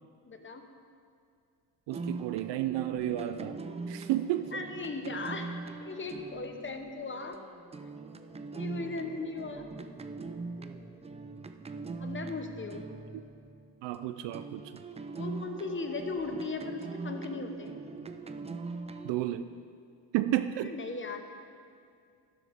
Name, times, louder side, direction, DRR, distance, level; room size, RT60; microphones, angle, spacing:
voice 1, 0.2-0.6 4.5-7.4 8.5-9.7 12.0-12.9 15.1-17.8 20.6-21.2, left 3 dB, 25° left, 5 dB, 1.2 m, -37 dB
sound 1, 1.9-14.0 14.3-19.1, right 3 dB, 15° right, 0.5 m, -41 dB
voice 2, 1.9-4.6 13.8-14.7 19.0-19.5 20.1-20.7, right 13 dB, 65° right, 10 dB, 0.6 m, -32 dB
12.0 x 11.0 x 3.6 m, 2.3 s
supercardioid pair, 85°, 45 cm